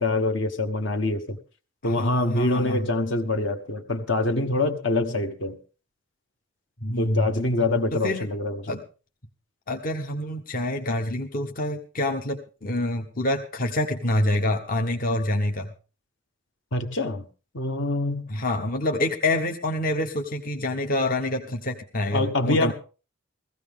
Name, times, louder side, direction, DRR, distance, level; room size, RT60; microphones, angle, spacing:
voice 1, 0.0-1.4 1.8-5.6 7.0-8.7 16.7-17.3 17.5-18.3 22.1-22.7, left 2 dB, 60° left, 1.2 m, -25 dB
voice 2, 1.8-2.9 6.8-7.3 7.9-8.3 8.7-8.8 9.7-15.7 18.3-22.7, left 1 dB, 40° left, 0.9 m, -27 dB
16.0 x 15.5 x 3.6 m
head